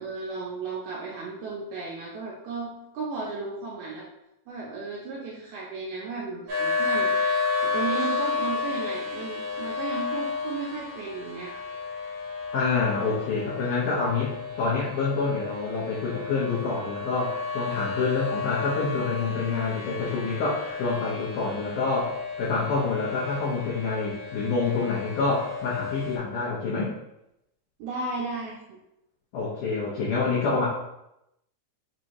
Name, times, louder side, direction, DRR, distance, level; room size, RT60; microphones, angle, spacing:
voice 1, 0.0-4.1 4.5-7.1 7.6-11.6 27.8-28.8, right 4 dB, 80° right, -4 dB, 2.4 m, -34 dB
sound 1, 6.5-26.2, left 4 dB, 60° right, 2.3 m, -32 dB
voice 2, 12.5-26.9 29.3-30.7, left 4 dB, 80° left, -7 dB, 1.8 m, -27 dB
6.2 x 2.6 x 3.0 m, 0.85 s
omnidirectional pair, 4.7 m